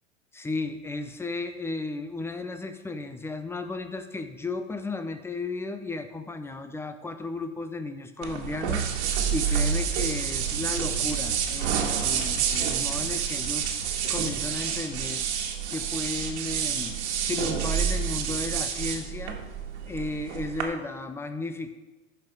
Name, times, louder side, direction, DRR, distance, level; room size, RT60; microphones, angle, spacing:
voice 1, 0.3-15.3 15.7-17.0 17.3-19.4 19.8-21.7, left 3 dB, 5° left, 8 dB, 0.6 m, -34 dB
sound 1, 8.2-20.6, right 7 dB, 55° right, 1.8 m, -28 dB
14.5 x 5.6 x 4.6 m, 1.1 s
hypercardioid pair, 115°, 40 cm